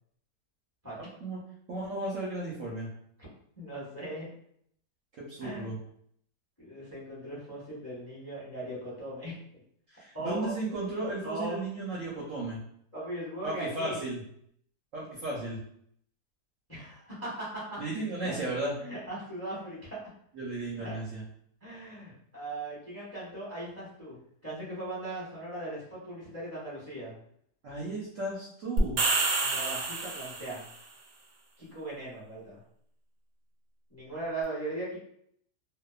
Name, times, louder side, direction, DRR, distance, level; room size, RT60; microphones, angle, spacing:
voice 1, 1.0-1.4 1.7-2.9 5.2-5.8 9.9-12.6 13.4-14.2 14.9-15.6 17.8-18.7 20.3-21.2 27.6-29.0, right 2 dB, 65° right, -5 dB, 0.8 m, -35 dB
voice 2, 3.6-4.3 5.4-5.7 6.6-9.3 10.1-10.5 11.2-11.6 12.9-14.0 16.7-17.8 18.2-18.3 18.8-20.0 20.8-21.0 21.6-27.1 29.4-30.6 31.6-32.6 33.9-35.0, right 1 dB, 10° left, -8 dB, 0.7 m, -39 dB
sound 1, 28.8-30.7, right 3 dB, 90° right, 1.2 m, -28 dB
2.8 x 2.2 x 2.3 m, 0.68 s
omnidirectional pair, 1.8 m